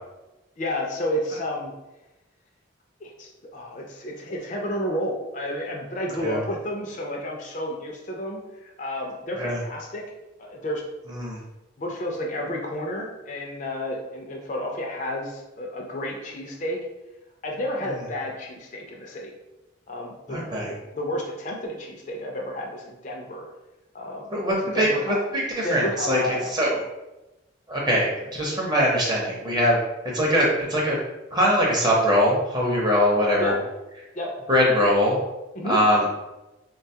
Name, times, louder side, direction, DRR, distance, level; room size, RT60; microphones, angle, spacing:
voice 1, 0.6-1.7 3.0-10.0 10.4-10.8 11.8-16.8 17.4-19.3 19.9-23.5 23.9-25.2 25.6-26.5 33.4-33.6 34.1-34.3 35.5-35.8, left 1 dB, 40° left, 0 dB, 0.4 m, -31 dB
voice 2, 20.3-20.7 24.3-26.8 27.7-29.8 30.1-31.0 31.3-33.5 34.5-35.2 35.6-36.1, equal, 20° right, -3 dB, 0.7 m, -22 dB
3.7 x 2.3 x 2.7 m, 1.0 s
head